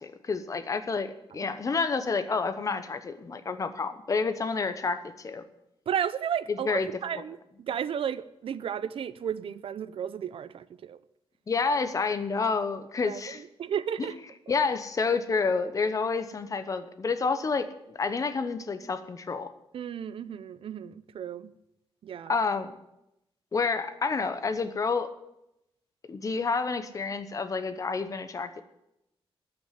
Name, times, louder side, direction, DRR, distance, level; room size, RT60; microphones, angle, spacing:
voice 1, 0.0-5.4 6.5-6.9 11.5-13.4 14.0-14.1 14.5-19.5 22.3-22.7 23.5-25.1 26.1-28.6, left 4 dB, 35° left, 10 dB, 0.9 m, -29 dB
voice 2, 5.9-11.0 13.1-14.2 19.7-21.5 22.0-22.3, right 8 dB, 70° right, 16 dB, 0.5 m, -33 dB
13.0 x 6.1 x 9.7 m, 0.86 s
wide cardioid pair, 175°, 10 cm